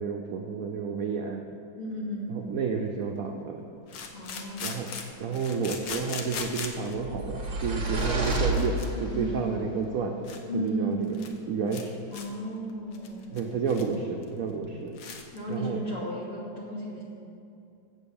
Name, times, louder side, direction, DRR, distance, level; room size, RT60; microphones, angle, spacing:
voice 1, 0.0-1.4 2.3-3.6 4.6-10.2 10.5-11.2 11.5-12.0 13.3-15.0 15.5-15.8, right 5 dB, 70° right, 2 dB, 0.8 m, -31 dB
voice 2, 1.8-2.3 4.1-4.8 9.1-9.4 10.5-11.0 12.1-13.3 15.3-17.0, equal, 40° left, -6 dB, 2.8 m, -34 dB
sound 1, 2.0-2.1 3.9-6.9 7.6-7.7 7.9-8.9 9.2-9.3 9.8-9.9 10.2-10.4 10.7-10.8 11.0-11.4 11.7-11.8 12.1-12.3 12.7-13.9 14.2-14.3 14.6-14.7 14.9-15.4, left 5 dB, 70° left, 1.4 m, -39 dB
sound 2, 7.0-9.4, right 2 dB, 30° right, 0.9 m, -29 dB
7.6 x 7.5 x 7.1 m, 2.6 s
omnidirectional pair, 2.2 m